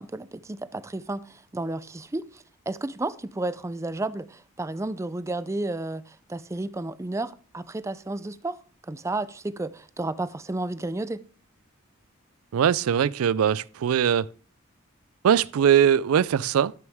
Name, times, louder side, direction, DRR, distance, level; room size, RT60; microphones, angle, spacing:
voice 1, 0.0-8.6 8.9-11.2, right 2 dB, 15° right, 0.4 m, -32 dB
voice 2, 12.5-14.3 15.2-16.7, right 8 dB, 85° right, 0.4 m, -21 dB
12.5 x 6.2 x 3.5 m
head